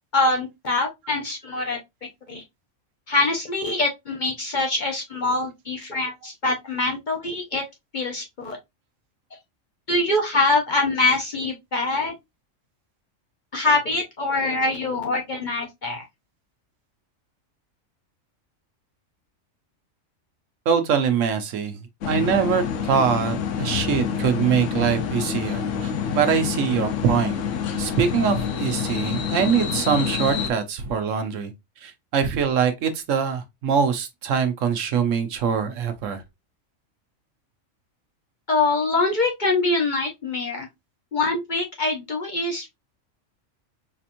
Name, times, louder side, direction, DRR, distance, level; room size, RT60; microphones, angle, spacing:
voice 1, 0.1-1.8 2.3-2.4 3.1-7.6 7.9-8.6 9.9-12.1 13.5-16.0 38.5-40.7 41.1-42.7, left 2 dB, 45° left, 0.8 m, -24 dB
voice 2, 20.7-21.8 22.1-27.4 27.8-31.5 31.8-36.2, right 7 dB, 75° right, 1.1 m, -23 dB
sound 1, 22.0-30.5, left 7 dB, 70° left, 1.0 m, -27 dB
4.2 x 2.9 x 2.5 m
omnidirectional pair, 1.4 m